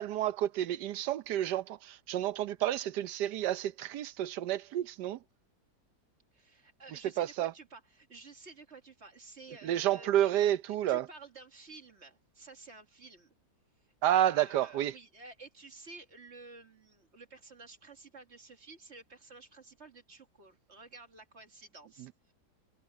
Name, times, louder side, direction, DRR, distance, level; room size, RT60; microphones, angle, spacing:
voice 1, 0.0-5.2 6.9-7.5 9.6-11.1 14.0-14.9, right 12 dB, 75° right, 1.3 m, -30 dB
voice 2, 6.3-10.5 10.9-13.3 13.8-22.3, right 3 dB, 40° right, 2.0 m, -52 dB
omnidirectional pair, 1.8 m